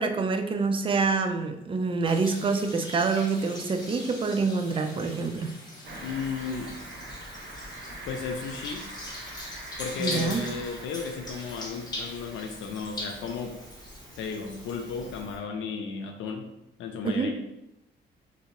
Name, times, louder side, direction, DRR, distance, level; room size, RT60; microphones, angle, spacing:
voice 1, 0.0-5.5 10.0-10.4 17.0-17.3, right 4 dB, 25° right, 7 dB, 0.4 m, -26 dB
sound 1, 2.0-15.2, left 1 dB, 20° left, 0.9 m, -42 dB
Cricket, 5.8-15.4, right 1 dB, 70° right, 0.9 m, -44 dB
voice 2, 6.0-6.8 8.1-8.9 9.8-13.6 14.2-16.5 16.8-17.3, left 5 dB, 75° left, 4 dB, 0.4 m, -34 dB
3.3 x 2.8 x 2.8 m, 0.88 s
cardioid pair, 90°, 20 cm